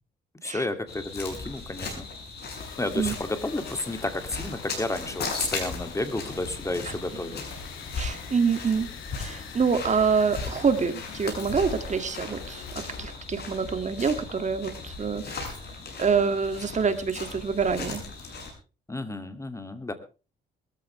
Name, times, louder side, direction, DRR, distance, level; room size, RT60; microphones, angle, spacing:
voice 1, 0.4-2.1 2.8-7.4 18.9-19.9, left 2 dB, 15° left, 8 dB, 2.6 m, -31 dB
sound 1, 0.9-18.5, left 4 dB, 55° left, 7.8 m, -37 dB
sound 2, 2.6-13.1, left 9 dB, 90° left, 2.3 m, -45 dB
voice 2, 8.0-8.9 9.2-12.7 13.0-15.6 16.0-18.0, right 5 dB, 35° right, 8 dB, 2.4 m, -26 dB
22.0 x 14.0 x 3.4 m, 0.34 s
cardioid pair, 90°, 20 cm